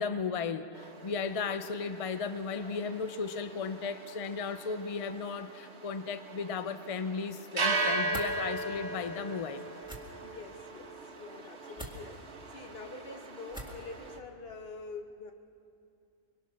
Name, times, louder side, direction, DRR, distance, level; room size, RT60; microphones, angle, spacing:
voice 1, 0.0-9.7, left 5 dB, 65° left, 11 dB, 0.3 m, -35 dB
sound 1, 0.7-14.2, right 2 dB, 50° right, 1.7 m, -38 dB
sound 2, 8.1-8.3 9.8-10.0 11.7-12.0 13.5-13.8, right 1 dB, 5° right, 2.1 m, -41 dB
voice 2, 10.2-12.2 12.5-15.3, left 3 dB, 45° left, 4 dB, 1.5 m, -46 dB
24.0 x 23.0 x 6.2 m, 2.5 s
omnidirectional pair, 1.5 m